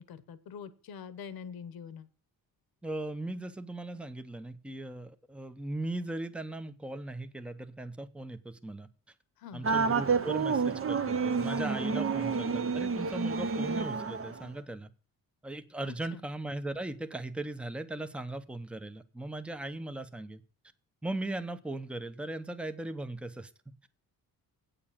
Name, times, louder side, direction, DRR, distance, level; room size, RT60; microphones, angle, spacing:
voice 1, 0.0-2.1 9.4-9.7 15.8-16.2, left 7 dB, 70° left, 14 dB, 1.1 m, -45 dB
voice 2, 2.8-8.9 9.5-14.9 15.4-20.4 21.0-23.5, right 2 dB, 5° right, 10 dB, 0.8 m, -38 dB
sound 1, 9.6-14.5, right 5 dB, 35° right, 0.9 m, -29 dB
8.6 x 7.0 x 7.3 m, 0.40 s
cardioid pair, 100°, 37 cm